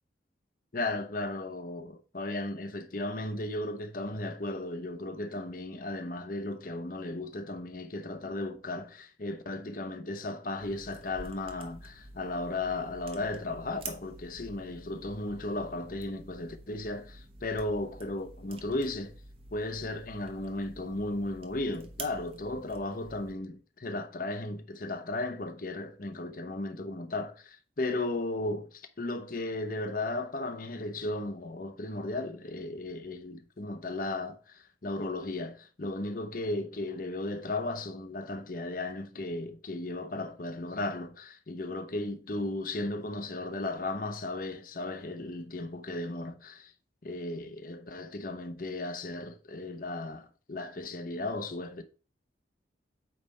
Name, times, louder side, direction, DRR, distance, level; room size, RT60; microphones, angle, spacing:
voice 1, 0.7-19.2 19.5-46.7 47.0-51.8, left 2 dB, 45° left, 0.8 m, -35 dB
sound 1, 10.6-23.3, right 3 dB, 30° right, 1.1 m, -49 dB
8.4 x 3.5 x 5.5 m
head